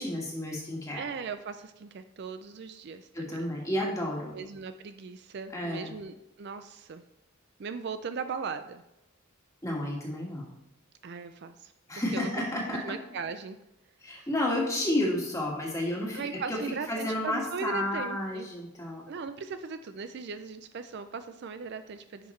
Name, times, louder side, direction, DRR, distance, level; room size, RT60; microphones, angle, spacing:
voice 1, 0.0-1.1 3.1-4.4 5.5-5.9 9.6-10.5 11.9-13.0 14.0-16.2 16.5-16.6 16.9-19.0, left 1 dB, 15° left, -2 dB, 1.6 m, -31 dB
voice 2, 0.9-3.4 4.3-7.0 7.6-8.8 11.0-12.3 12.7-13.6 14.1-14.3 16.1-18.5 19.1-22.3, right 5 dB, 50° right, 10 dB, 0.4 m, -38 dB
10.5 x 5.7 x 3.1 m, 0.88 s
head